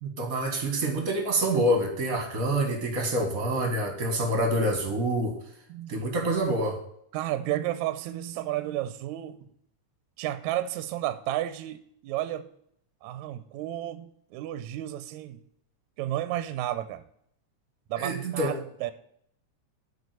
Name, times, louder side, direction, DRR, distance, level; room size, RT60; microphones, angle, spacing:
voice 1, 0.0-5.4 5.9-6.8 18.0-18.5, right 1 dB, 40° right, 4 dB, 1.2 m, -27 dB
voice 2, 5.7-6.0 7.1-9.4 10.2-12.5 13.0-15.4 16.0-17.1 17.9-18.9, right 13 dB, 80° right, 12 dB, 1.8 m, -32 dB
8.3 x 4.6 x 6.7 m, 0.70 s
omnidirectional pair, 3.6 m